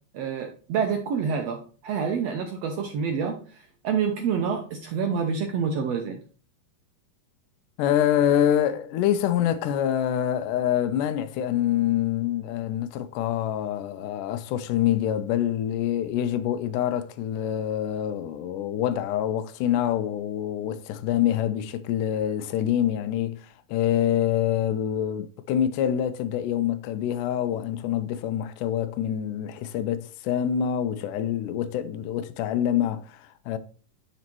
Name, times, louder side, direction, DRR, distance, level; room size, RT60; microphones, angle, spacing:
voice 1, 0.1-6.2, right 6 dB, 75° right, 1.6 m, -28 dB
voice 2, 7.8-33.6, left 10 dB, 80° left, 2.0 m, -26 dB
11.0 x 4.2 x 3.0 m
omnidirectional pair, 3.8 m